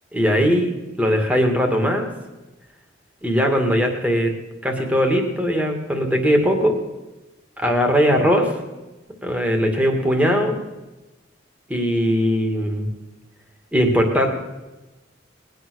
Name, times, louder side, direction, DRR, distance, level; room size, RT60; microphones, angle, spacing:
voice 1, 0.1-0.7 1.0-2.1 3.2-4.3 4.6-6.8 7.6-8.5 9.2-10.6 11.7-12.9 13.7-14.3, equal, 10° right, 3 dB, 2.2 m, -19 dB
20.0 x 9.4 x 6.4 m, 1.1 s
head